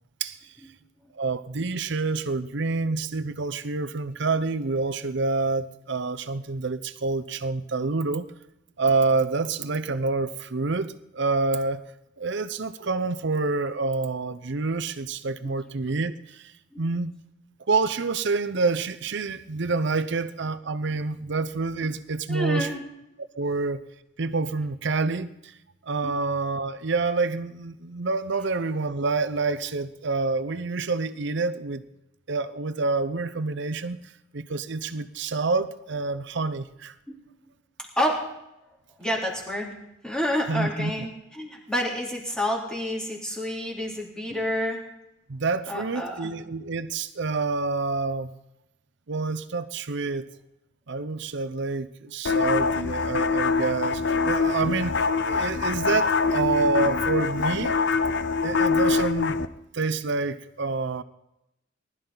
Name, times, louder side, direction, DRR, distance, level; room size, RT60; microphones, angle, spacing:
voice 1, 0.2-0.5 1.1-8.3 8.8-11.9 12.2-17.1 17.7-22.7 23.4-23.8 24.2-25.5 25.9-31.8 32.3-34.0 34.3-36.9 40.5-40.9 45.3-48.3 49.1-50.3 50.9-57.7 58.4-59.4 59.7-61.0, right 3 dB, 65° right, 13 dB, 0.8 m, -27 dB
voice 2, 22.3-22.8 26.0-26.2 38.0-38.2 39.0-39.7 40.0-44.8 45.7-46.3, equal, 5° left, -3 dB, 3.3 m, -29 dB
sound 1, 52.3-59.5, left 4 dB, 60° left, 0.6 m, -24 dB
20.0 x 12.5 x 4.0 m, 0.87 s
head